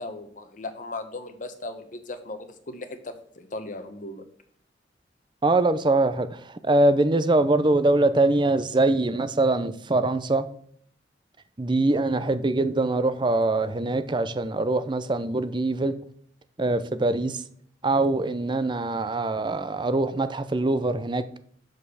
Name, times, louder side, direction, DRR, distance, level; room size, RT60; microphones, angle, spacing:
voice 1, 0.0-4.2, left 2 dB, 45° left, 1.0 m, -37 dB
voice 2, 5.4-10.5 11.6-15.9 16.6-17.4 17.8-21.2, right 2 dB, 25° right, 0.6 m, -23 dB
6.5 x 5.5 x 6.3 m
head